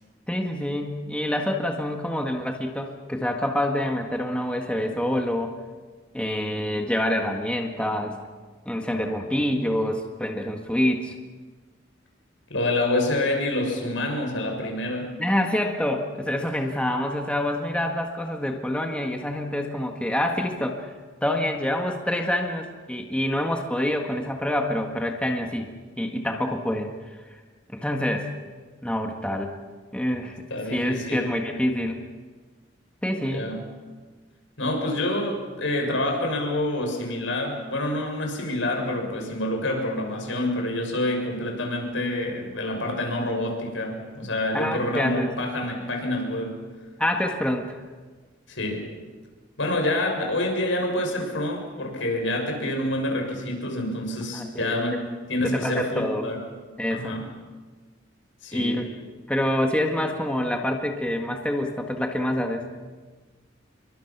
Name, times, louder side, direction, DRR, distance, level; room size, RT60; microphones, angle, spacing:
voice 1, 0.3-5.5 6.1-8.2 8.6-11.1 15.2-20.9 21.2-25.7 26.0-26.9 27.3-27.4 27.7-28.3 28.8-29.5 29.9-30.4 30.7-32.0 33.0-33.5 44.5-45.3 47.0-47.7 54.3-55.0 55.4-56.3 56.8-57.1 58.5-58.9 59.3-62.9, left 1 dB, 5° left, 2 dB, 1.7 m, -26 dB
voice 2, 12.5-15.1 30.5-31.3 33.3-33.6 34.6-46.6 48.5-48.9 49.6-55.0 55.3-56.4 56.9-57.2 58.4-58.8, left 1 dB, 80° left, 2 dB, 6.8 m, -27 dB
28.5 x 23.5 x 6.0 m, 1.4 s
head